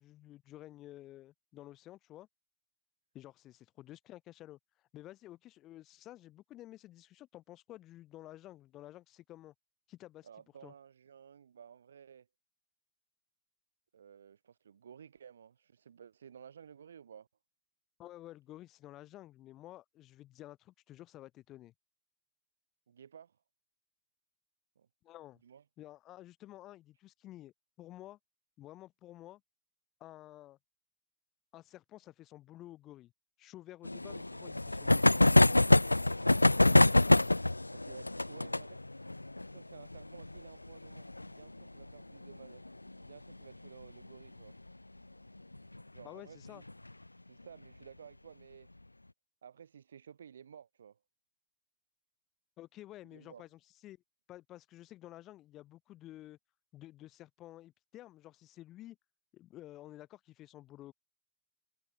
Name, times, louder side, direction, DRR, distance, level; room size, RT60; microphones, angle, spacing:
voice 1, 0.0-2.3 3.1-4.6 4.9-9.5 9.9-10.3 10.6-10.7 18.0-21.7 25.0-25.4 25.8-28.2 28.6-29.4 30.0-30.6 31.5-33.1 33.4-35.2 46.0-46.6 52.6-54.0 54.3-56.4 56.7-59.0 59.3-60.9, left 14 dB, 35° left, 2.0 m, -52 dB
voice 2, 10.2-12.3 13.9-17.3 22.9-23.4 24.7-24.9 25.4-25.6 37.7-38.8 39.5-42.6 43.0-44.6 45.9-46.6 47.3-48.7 49.4-51.0 53.1-53.4, right 8 dB, 70° right, 4.9 m, -54 dB
sound 1, 33.8-43.1 43.3-43.4 43.7-43.8 44.0-44.1 45.5-45.8 46.5-46.9, left 2 dB, 85° left, 0.3 m, -26 dB
figure-of-eight pair, 90°, 0 cm